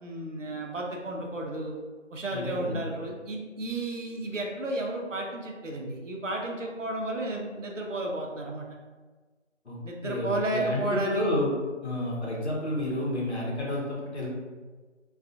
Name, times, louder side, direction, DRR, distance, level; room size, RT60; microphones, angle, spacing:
voice 1, 0.0-1.8 2.1-8.7 9.8-11.3, right 2 dB, 80° right, 0 dB, 0.6 m, -32 dB
voice 2, 2.3-2.9 9.6-11.5 11.8-14.3, left 1 dB, 60° left, -4 dB, 0.9 m, -30 dB
2.4 x 2.3 x 2.6 m, 1.4 s
figure-of-eight pair, 175°, 37 cm